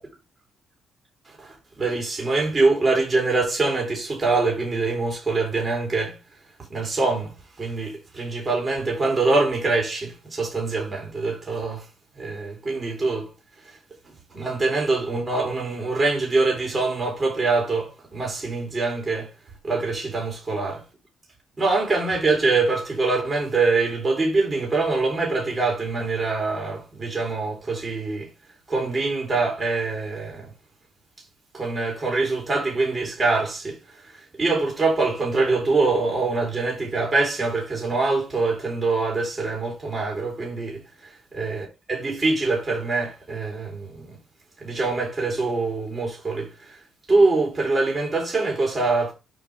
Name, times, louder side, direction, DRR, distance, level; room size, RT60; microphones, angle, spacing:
voice 1, 1.3-6.2 6.7-11.9 12.2-13.3 13.6-13.8 14.3-19.3 19.6-20.8 21.6-28.3 28.7-30.5 31.5-40.8 41.3-44.2 44.6-46.8 47.1-49.1, right 3 dB, 35° right, 4.0 m, -24 dB
7.0 x 5.9 x 3.5 m
cardioid pair, 80°, 0 cm